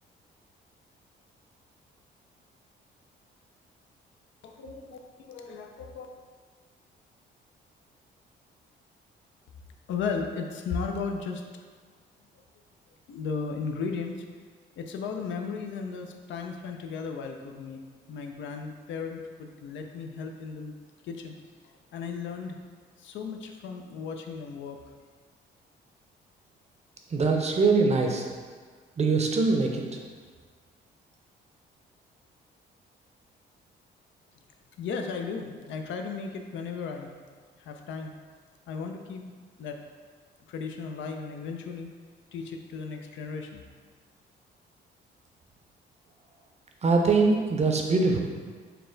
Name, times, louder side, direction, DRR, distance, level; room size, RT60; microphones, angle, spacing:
voice 1, 4.4-5.0 5.3-6.1 9.9-11.4 13.1-14.2 14.8-17.8 18.1-20.7 21.0-21.3 21.6-22.6 23.0-24.8 34.8-37.1 37.6-38.1 38.7-39.8 40.5-41.9 42.3-43.6, left 5 dB, 70° left, 4 dB, 0.4 m, -35 dB
voice 2, 27.1-28.3 29.0-29.8 46.8-48.2, right 4 dB, 35° right, 2 dB, 0.5 m, -23 dB
4.1 x 2.2 x 3.8 m, 1.6 s
cardioid pair, 90°, 20 cm